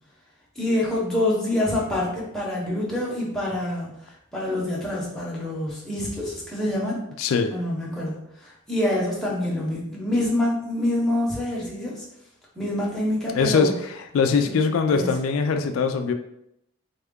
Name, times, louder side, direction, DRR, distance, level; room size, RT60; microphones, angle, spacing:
voice 1, 0.6-3.9 4.3-7.0 7.5-12.0 12.5-13.7 14.4-14.5 14.9-15.1, left 1 dB, ahead, -6 dB, 0.7 m, -26 dB
voice 2, 7.2-7.5 13.3-16.1, left 5 dB, 75° left, 7 dB, 0.3 m, -22 dB
3.6 x 2.2 x 3.6 m, 0.79 s
head